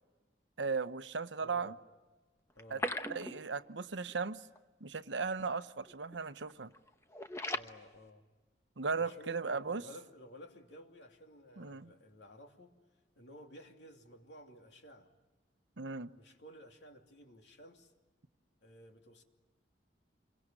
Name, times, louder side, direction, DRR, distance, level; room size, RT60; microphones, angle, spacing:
voice 1, 0.6-1.7 2.7-2.8 3.1-4.4 4.8-6.7 8.8-9.8 11.6-11.9 15.8-16.1, right 4 dB, 85° right, 12 dB, 0.9 m, -37 dB
voice 2, 1.4-1.8 2.5-3.0 7.5-8.2 8.9-12.7 13.2-15.1 16.2-17.9 18.6-19.2, equal, 75° left, 3 dB, 2.9 m, -54 dB
sound 1, 2.5-3.8 4.1-4.2 4.5-4.6 5.3-5.5 5.8-6.1 6.5-7.7, left 1 dB, 15° left, 0.9 m, -39 dB
27.5 x 23.0 x 9.0 m, 1.2 s
head